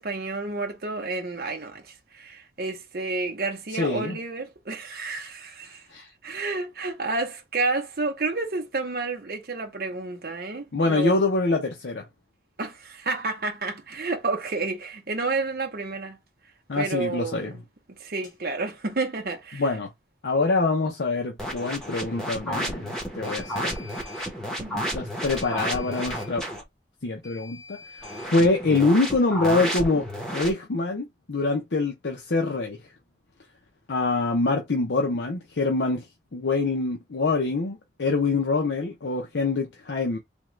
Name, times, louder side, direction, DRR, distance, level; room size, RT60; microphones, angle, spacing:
voice 1, 0.0-5.8 6.2-11.2 12.6-16.2 16.7-17.6 18.0-19.7 24.6-24.9 28.7-28.8, right 3 dB, 55° right, 0.7 m, -30 dB
voice 2, 3.7-4.2 5.9-6.1 10.7-12.1 16.7-17.5 19.5-19.9 20.2-23.9 24.7-26.4 27.0-28.0 28.3-30.1 30.3-32.8 33.9-36.0 36.3-40.2, left 3 dB, 80° left, 0.7 m, -25 dB
sound 1, 18.2-18.4 23.2-24.3 25.2-26.3 27.2-28.3, left 4 dB, 25° left, 1.6 m, -47 dB
sound 2, 21.4-26.6 28.0-30.5, equal, 5° left, 1.0 m, -32 dB
3.6 x 2.3 x 3.1 m
head